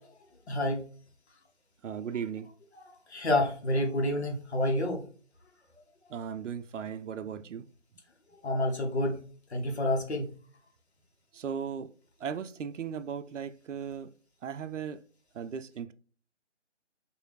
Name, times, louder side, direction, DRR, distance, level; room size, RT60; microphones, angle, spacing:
voice 1, 0.5-0.8 3.1-5.0 8.4-9.2 9.5-10.3, left 1 dB, 60° left, 1.2 m, -28 dB
voice 2, 1.8-2.5 6.1-7.7 11.3-11.9 12.2-14.1 14.4-15.0 15.3-15.9, right 7 dB, 80° right, 0.5 m, -37 dB
4.6 x 2.6 x 3.1 m
figure-of-eight pair, 155°, 36 cm